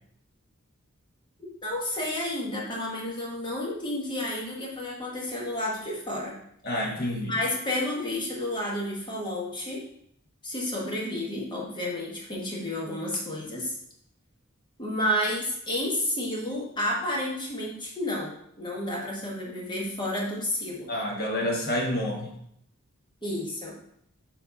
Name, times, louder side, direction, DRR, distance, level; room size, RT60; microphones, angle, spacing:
voice 1, 1.6-6.4 7.0-9.8 10.4-13.7 14.8-20.9 23.2-23.8, left 1 dB, 20° left, -3 dB, 1.5 m, -31 dB
voice 2, 6.6-7.3 20.9-22.3, left 1 dB, 45° left, -1 dB, 1.4 m, -28 dB
7.3 x 3.5 x 4.0 m, 0.71 s
head